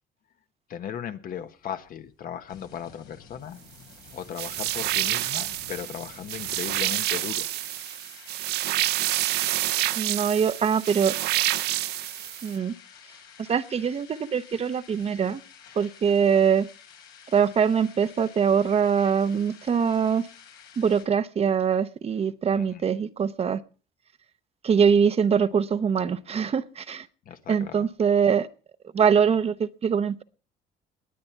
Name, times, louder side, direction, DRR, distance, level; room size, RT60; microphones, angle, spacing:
voice 1, 0.7-3.6 4.1-7.5 22.5-22.9 27.2-27.9, left 9 dB, 55° left, 9 dB, 1.4 m, -37 dB
sound 1, 1.4-21.0, left 7 dB, 90° left, 5.4 m, -51 dB
sound 2, 4.4-12.5, right 15 dB, 75° right, 0.6 m, -28 dB
voice 2, 10.0-11.2 12.4-12.7 13.4-15.4 15.8-16.7 17.3-20.3 20.8-23.6 24.6-27.1 27.5-28.5 28.9-30.2, right 7 dB, 35° right, 12 dB, 0.8 m, -23 dB
20.5 x 8.5 x 4.6 m, 0.37 s
cardioid pair, 110°, 17 cm